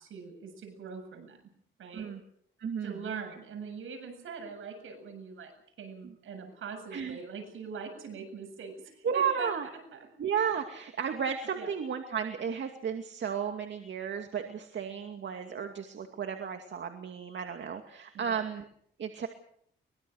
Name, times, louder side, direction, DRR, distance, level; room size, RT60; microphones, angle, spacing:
voice 1, 0.0-1.4 1.8-2.1 2.8-9.5 9.9-10.1 11.5-11.7 18.1-18.4, right 5 dB, 80° right, 6 dB, 7.7 m, -42 dB
voice 2, 2.6-3.0 6.0-6.1 6.9-7.2 9.0-9.7 10.2-18.6 19.0-19.3, right 7 dB, 60° right, 5 dB, 2.4 m, -33 dB
24.0 x 22.0 x 6.5 m, 0.65 s
cardioid pair, 100°, 21 cm